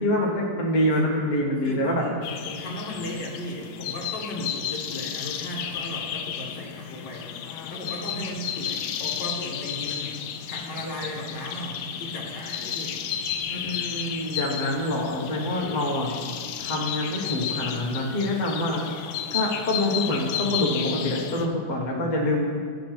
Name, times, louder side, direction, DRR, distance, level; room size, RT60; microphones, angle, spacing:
voice 1, 0.0-2.0 13.5-16.1 16.6-18.8 19.3-22.6, left 1 dB, 25° left, -2 dB, 1.1 m, -26 dB
voice 2, 1.6-2.2 2.5-7.3 7.7-13.0 13.5-13.7, left 1 dB, 60° left, -1 dB, 1.8 m, -36 dB
sound 1, 2.2-21.5, left 9 dB, 75° left, 1.3 m, -33 dB
10.0 x 5.4 x 5.9 m, 2.1 s
omnidirectional pair, 2.3 m